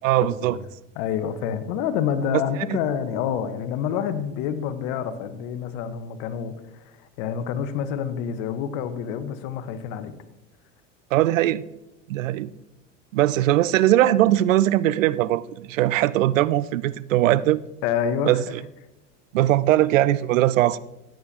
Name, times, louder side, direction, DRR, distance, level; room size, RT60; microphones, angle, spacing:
voice 1, 0.0-0.6 2.7-2.8 11.1-11.6 12.1-12.5 13.1-17.6 18.2-18.4 19.3-20.8, right 14 dB, 85° right, 0.5 m, -20 dB
voice 2, 1.0-10.1 17.8-18.4, left 8 dB, 60° left, 1.1 m, -28 dB
15.5 x 8.9 x 2.9 m
hypercardioid pair, 90°, 38 cm